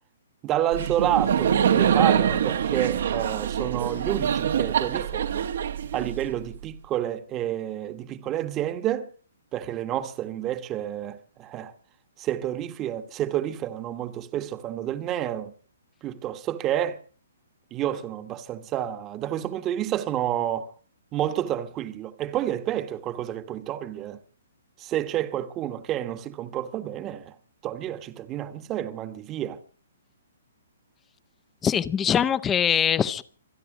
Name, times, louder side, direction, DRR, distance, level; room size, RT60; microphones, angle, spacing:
voice 1, 0.4-5.5 5.9-9.1 9.5-11.7 12.2-15.5 16.0-17.0 17.7-20.7 21.1-24.2 24.8-27.3 27.6-29.6, right 11 dB, 20° right, 1.2 m, -29 dB
Laughter, 0.7-6.6, right 8 dB, 65° right, 1.2 m, -24 dB
voice 2, 31.6-33.2, left 8 dB, 15° left, 0.7 m, -22 dB
26.0 x 10.0 x 4.9 m
hypercardioid pair, 150°, 0 cm